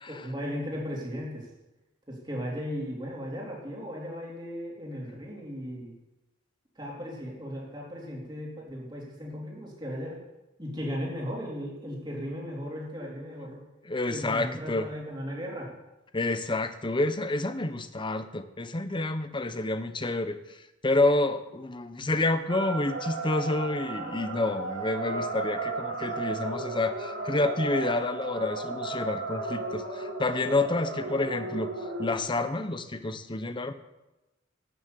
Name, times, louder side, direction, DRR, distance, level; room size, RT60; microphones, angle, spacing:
voice 1, 0.1-1.5 2.1-5.9 6.8-10.2 10.6-13.6 14.1-15.7, equal, 25° right, -3 dB, 3.7 m, -36 dB
voice 2, 13.8-14.9 16.1-33.7, left 2 dB, 25° left, 10 dB, 0.8 m, -29 dB
sound 1, 22.5-32.2, right 2 dB, 65° right, 2.0 m, -34 dB
12.5 x 6.9 x 8.2 m, 1.0 s
head